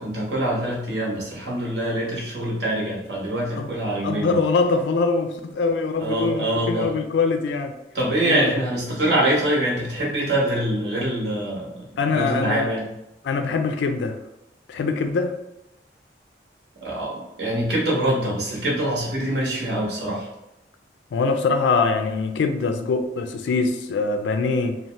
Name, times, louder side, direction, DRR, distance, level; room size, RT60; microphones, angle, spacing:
voice 1, 0.0-4.4 6.0-6.9 7.9-11.9 12.1-12.9 16.8-20.3, right 1 dB, 75° right, -4 dB, 0.9 m, -24 dB
voice 2, 4.0-7.7 8.2-8.5 12.0-12.7 13.2-14.2 14.7-15.4 21.1-24.8, left 4 dB, 85° left, 7 dB, 0.3 m, -23 dB
2.7 x 2.0 x 3.0 m, 0.88 s
head